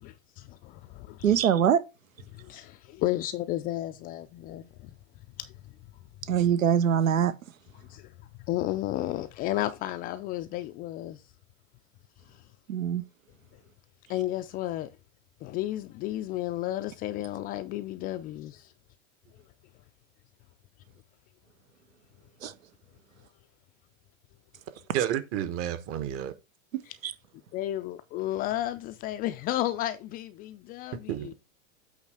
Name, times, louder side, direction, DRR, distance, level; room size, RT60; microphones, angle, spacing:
voice 1, 0.0-1.4 2.3-4.9 5.4-5.5 7.9-8.1 8.5-11.2 14.1-14.9 15.4-18.7 26.8-26.9 27.5-31.3, left 14 dB, 25° left, 0.3 m, -33 dB
voice 2, 1.2-1.8 6.3-7.3 12.7-13.0 22.4-22.5 27.0-27.1, right 9 dB, 85° right, 0.8 m, -23 dB
voice 3, 24.9-26.3 31.1-31.3, right 11 dB, 35° right, 1.1 m, -30 dB
8.2 x 3.3 x 4.8 m
hypercardioid pair, 110°, 39 cm